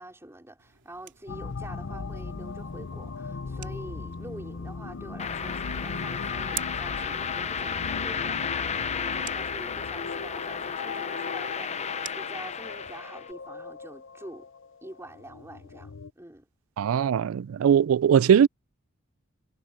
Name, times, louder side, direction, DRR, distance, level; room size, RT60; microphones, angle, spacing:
voice 1, 0.0-14.5 14.8-16.5, right 1 dB, 15° right, 3.6 m, -46 dB
sound 1, 0.6-13.0, right 12 dB, 60° right, 3.3 m, -48 dB
sound 2, 1.3-16.1, left 4 dB, 65° left, 0.7 m, -38 dB
sound 3, 5.2-13.3, left 6 dB, 35° left, 0.8 m, -33 dB
voice 2, 16.8-18.5, right 8 dB, 85° right, 0.3 m, -20 dB
head